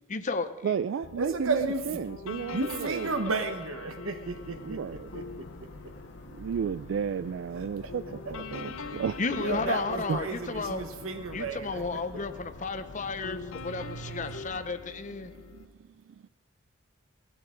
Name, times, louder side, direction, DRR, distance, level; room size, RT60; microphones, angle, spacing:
voice 1, 0.1-0.5 9.2-10.8 11.3-15.3, left 4 dB, 35° left, 11 dB, 0.7 m, -33 dB
voice 2, 0.6-3.2 4.6-5.1 6.3-8.0 8.3-9.2 10.1-10.2 13.7-14.4 15.2-15.7 16.1-16.3, right 7 dB, 65° right, 12 dB, 0.3 m, -33 dB
sound 1, 1.0-15.7, left 4 dB, 80° left, 0.6 m, -44 dB
voice 3, 1.2-1.8 2.5-4.8 5.1-5.2 7.6-7.9 8.2-8.3 9.3-11.8, right 3 dB, 80° right, 7 dB, 1.2 m, -32 dB
sound 2, 4.2-14.6, left 1 dB, 60° left, 1.5 m, -49 dB
18.5 x 12.5 x 3.8 m, 1.3 s
head